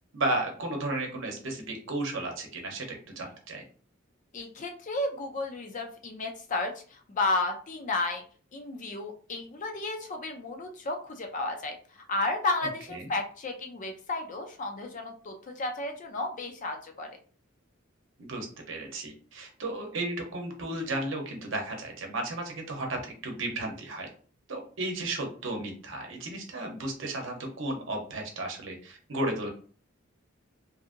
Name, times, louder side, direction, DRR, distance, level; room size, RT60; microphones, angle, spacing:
voice 1, 0.1-3.6 12.9-13.1 18.2-24.1 24.5-29.5, right 2 dB, 70° right, 2 dB, 0.8 m, -34 dB
voice 2, 4.3-8.2 8.5-17.1, left 2 dB, 40° left, 4 dB, 0.5 m, -33 dB
2.7 x 2.6 x 2.5 m, 0.42 s
head